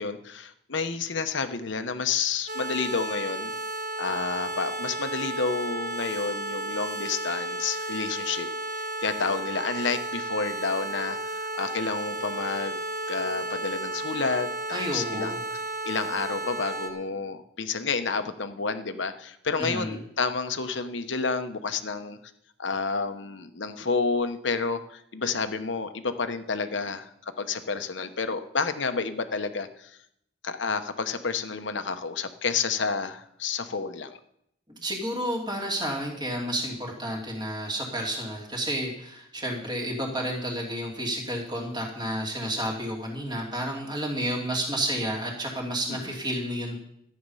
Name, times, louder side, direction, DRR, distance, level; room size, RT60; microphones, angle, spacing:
voice 1, 0.0-3.5 4.0-8.5 8.7-12.8 13.1-15.5 15.8-22.2 22.6-29.9 30.4-34.2 45.9-46.2, left 4 dB, 65° left, 9 dB, 1.0 m, -30 dB
sound 1, 2.5-16.9, right 2 dB, 40° right, 1.7 m, -33 dB
voice 2, 14.7-15.4 19.6-19.9 34.7-46.8, equal, 25° right, -1 dB, 2.7 m, -31 dB
14.0 x 8.7 x 5.6 m, 0.76 s
head